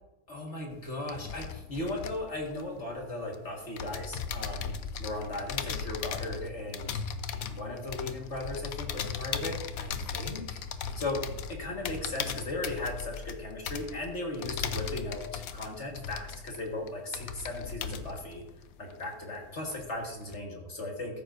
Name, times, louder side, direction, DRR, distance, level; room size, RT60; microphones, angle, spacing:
voice 1, 0.3-4.7 5.0-7.0 7.5-10.6 11.0-11.2 11.5-18.4 18.8-21.2, left 2 dB, 45° left, 0 dB, 2.0 m, -37 dB
sound 1, 0.7-3.3 3.8-19.4 19.7-20.4, left 7 dB, 70° left, 1.1 m, -38 dB
14.0 x 13.0 x 2.6 m, 0.95 s
omnidirectional pair, 1.6 m